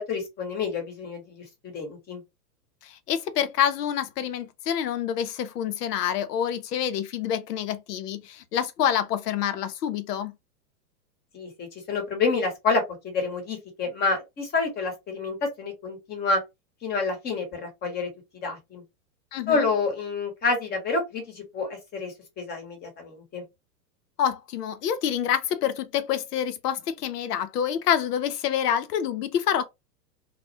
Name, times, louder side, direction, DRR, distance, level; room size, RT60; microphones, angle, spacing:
voice 1, 0.0-2.2 11.3-16.4 16.8-18.8 19.5-23.4, left 4 dB, 20° left, 0.9 m, -28 dB
voice 2, 2.8-10.3 19.3-19.7 24.2-29.6, left 9 dB, 80° left, 0.6 m, -27 dB
2.3 x 2.1 x 2.7 m
hypercardioid pair, 125°, 47 cm